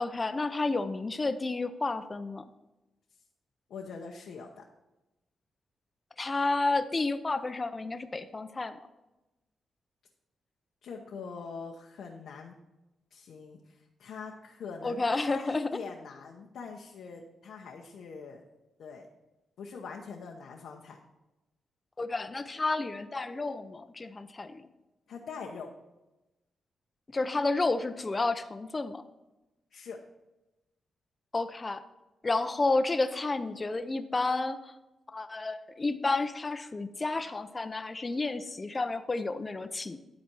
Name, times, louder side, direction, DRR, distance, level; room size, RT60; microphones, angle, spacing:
voice 1, 0.0-2.4 6.2-8.8 14.8-15.8 22.0-24.7 27.1-29.0 31.3-31.8 32.2-34.7 35.1-40.0, left 3 dB, 25° left, 11 dB, 0.6 m, -31 dB
voice 2, 3.7-4.6 10.8-12.5 13.1-18.4 18.8-19.1 19.6-21.0 25.1-25.7 29.7-30.0, left 5 dB, 80° left, 0 dB, 0.9 m, -43 dB
11.5 x 4.3 x 6.1 m, 1.0 s
cardioid pair, 95°, 0 cm